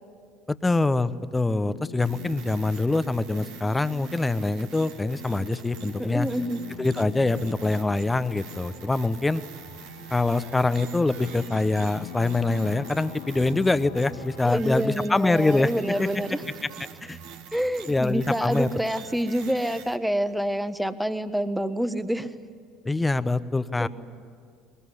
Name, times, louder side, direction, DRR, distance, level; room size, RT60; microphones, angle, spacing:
voice 1, 0.5-6.3 6.8-9.4 10.1-15.7 16.0-16.1 17.0-17.2 17.9-18.7 22.8-23.9, left 2 dB, 15° left, 14 dB, 1.0 m, -24 dB
sound 1, 1.7-14.4, left 13 dB, 70° left, 0.8 m, -44 dB
sound 2, 2.0-20.0, right 7 dB, 65° right, 1.8 m, -45 dB
voice 2, 6.0-6.6 14.4-16.5 17.5-22.3 23.8-23.9, equal, ahead, 11 dB, 1.3 m, -27 dB
22.0 x 21.5 x 9.9 m, 2.1 s
figure-of-eight pair, 65°, 0 cm